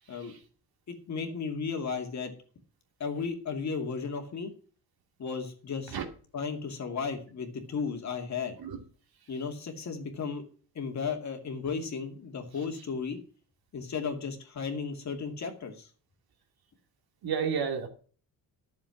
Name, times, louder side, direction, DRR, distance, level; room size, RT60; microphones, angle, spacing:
voice 1, 0.9-2.3 3.0-4.5 5.2-6.0 6.3-8.6 9.3-10.4 10.7-13.2 13.7-15.9, left 5 dB, 45° left, 5 dB, 2.4 m, -34 dB
voice 2, 17.2-17.9, right 6 dB, 65° right, 5 dB, 2.6 m, -30 dB
11.5 x 7.1 x 5.9 m, 0.41 s
cardioid pair, 140°, 39 cm